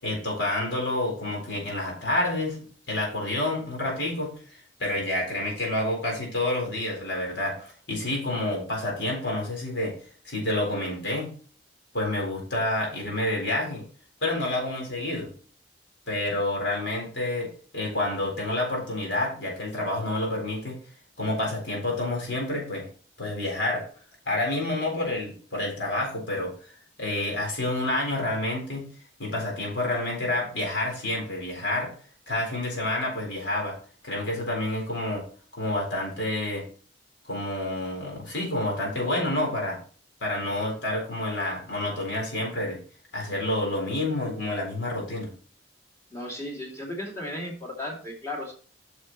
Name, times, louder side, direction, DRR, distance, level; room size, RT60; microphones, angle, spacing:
voice 1, 0.0-2.6 2.9-10.0 10.2-11.3 11.9-13.8 14.2-15.3 16.1-20.8 21.2-22.9 23.2-23.9 24.3-26.5 27.0-28.9 29.2-31.9 32.3-33.8 34.0-35.3 35.5-36.7 37.3-39.8 40.2-42.8 43.1-45.3, left 1 dB, 75° left, -1 dB, 4.2 m, -28 dB
voice 2, 46.1-48.5, left 1 dB, 15° left, -2 dB, 2.6 m, -35 dB
9.7 x 6.4 x 3.1 m, 0.42 s
head